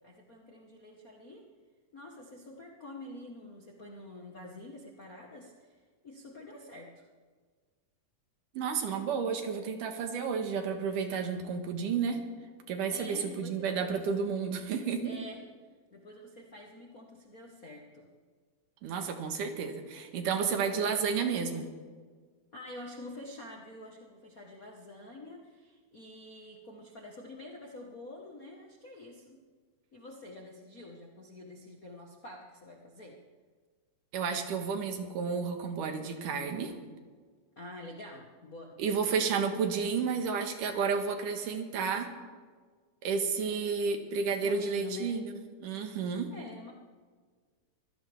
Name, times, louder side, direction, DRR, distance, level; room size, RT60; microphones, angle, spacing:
voice 1, 0.0-1.4 1.9-7.0 12.9-14.0 15.0-15.4 15.9-18.1 22.5-29.4 29.9-33.2 37.6-39.1 44.4-45.2 46.3-46.7, left 1 dB, 50° left, -1 dB, 1.0 m, -47 dB
voice 2, 8.5-12.2 12.7-15.1 18.8-21.7 34.1-36.7 38.8-42.1 43.0-45.2 45.6-46.3, right 5 dB, 75° right, 5 dB, 2.9 m, -31 dB
24.0 x 16.5 x 3.5 m, 1.5 s
omnidirectional pair, 3.8 m